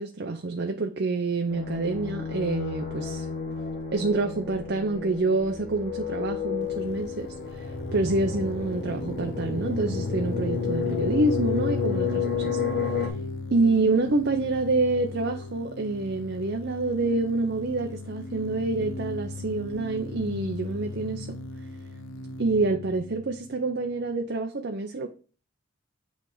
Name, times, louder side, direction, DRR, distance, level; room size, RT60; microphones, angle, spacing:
voice 1, 0.0-3.3 3.9-7.3 7.5-7.7 7.9-12.6 13.0-13.1 13.5-21.3 22.4-25.1, right 3 dB, 55° right, 0.6 m, -27 dB
sound 1, 1.5-13.1, left 6 dB, 50° left, 1.7 m, -31 dB
sound 2, 6.6-24.2, left 2 dB, 70° left, 0.6 m, -37 dB
8.4 x 3.4 x 4.7 m
head